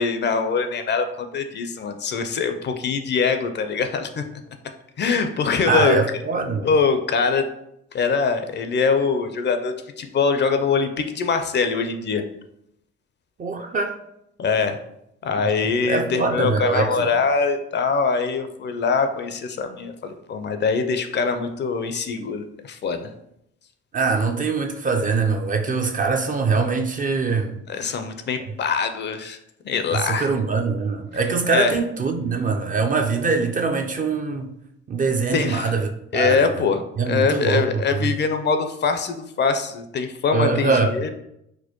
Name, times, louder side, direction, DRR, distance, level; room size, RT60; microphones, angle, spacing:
voice 1, 0.0-4.3 5.0-6.0 6.6-7.5 7.9-12.2 14.4-14.8 15.2-23.1 27.7-29.4 29.6-30.3 31.5-31.8 35.3-35.7 36.1-41.1, left 5 dB, 35° left, 0.4 m, -23 dB
voice 2, 5.7-6.7 13.4-14.0 15.8-17.1 23.9-27.6 29.9-34.5 34.9-36.7 37.0-38.1 40.3-40.9, right 4 dB, 30° right, 0.4 m, -23 dB
4.2 x 2.1 x 2.9 m
supercardioid pair, 70°, 30 cm